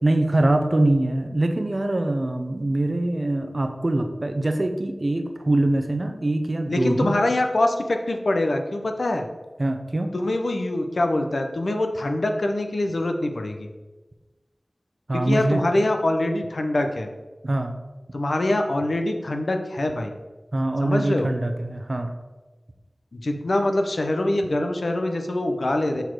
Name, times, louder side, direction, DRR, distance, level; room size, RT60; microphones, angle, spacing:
voice 1, 0.0-7.2 9.6-10.1 15.1-15.6 17.4-17.8 20.5-22.1, right 1 dB, 50° right, 6 dB, 0.7 m, -23 dB
voice 2, 6.7-9.3 10.1-13.7 15.1-17.1 18.1-20.1 20.8-21.3 23.1-26.0, left 1 dB, 85° left, 5 dB, 0.7 m, -24 dB
6.7 x 4.2 x 4.6 m, 1.2 s
wide cardioid pair, 55°, 0 cm